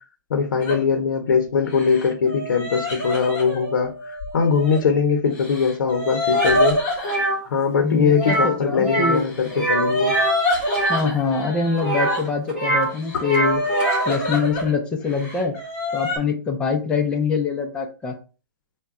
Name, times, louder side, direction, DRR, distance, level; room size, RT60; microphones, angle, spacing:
voice 1, 0.3-6.8 7.4-10.2, left 5 dB, 75° left, 4 dB, 0.7 m, -21 dB
sound 1, 0.6-0.8 1.7-4.8 5.3-7.2 9.2-12.3 12.9-14.7 15.1-16.2, left 1 dB, 25° left, 1.3 m, -27 dB
sound 2, 6.3-6.6 7.0-7.4 8.1-8.5 8.8-9.2 9.5-11.0 11.8-12.9 13.2-14.1, right 2 dB, 10° right, 1.2 m, -23 dB
voice 2, 7.8-9.2 10.9-13.6 14.1-15.5 15.9-18.1, left 5 dB, 10° left, 2 dB, 0.4 m, -24 dB
3.8 x 2.2 x 3.6 m, 0.35 s
hypercardioid pair, 165°, 11 cm